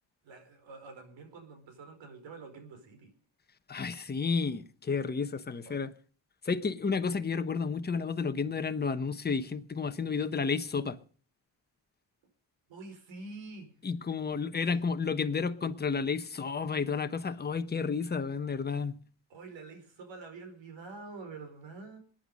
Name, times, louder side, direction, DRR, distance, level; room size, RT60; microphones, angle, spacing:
voice 1, 0.2-3.1 5.6-5.8 12.7-13.7 14.7-14.9 19.3-22.0, right 3 dB, 80° right, 4.8 m, -47 dB
voice 2, 3.7-5.9 6.4-11.0 13.8-19.0, left 5 dB, 20° left, 1.1 m, -31 dB
21.5 x 10.0 x 5.4 m
cardioid pair, 120°, 44 cm